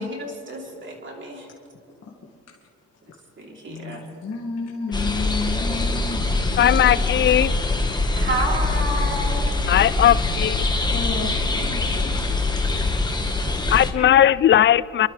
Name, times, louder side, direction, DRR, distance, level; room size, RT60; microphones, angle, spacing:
voice 1, 0.0-1.5 3.4-4.0 8.1-9.5, right 1 dB, 40° right, 3.3 m, -30 dB
voice 2, 3.7-6.9 8.9-9.0 9.8-10.6 10.9-12.3 13.5-13.6 13.9-14.1, left 4 dB, 55° left, 2.0 m, -33 dB
sound 1, 4.9-13.9, left 2 dB, 15° left, 1.5 m, -23 dB
voice 3, 6.6-7.5 9.7-10.7 13.7-15.1, left 11 dB, 40° left, 0.4 m, -17 dB
27.5 x 12.0 x 3.3 m
cardioid pair, 90°, 30 cm